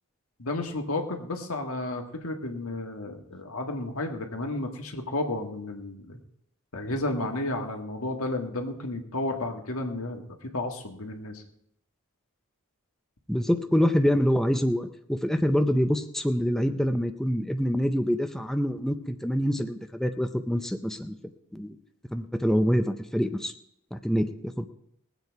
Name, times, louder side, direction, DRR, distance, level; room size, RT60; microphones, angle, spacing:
voice 1, 0.4-6.2 6.7-11.4, left 2 dB, 80° left, 3 dB, 1.7 m, -32 dB
voice 2, 13.3-21.1 21.5-21.8 22.1-23.5 23.9-24.7, equal, ahead, 6 dB, 0.5 m, -26 dB
20.0 x 8.0 x 4.7 m, 0.73 s
head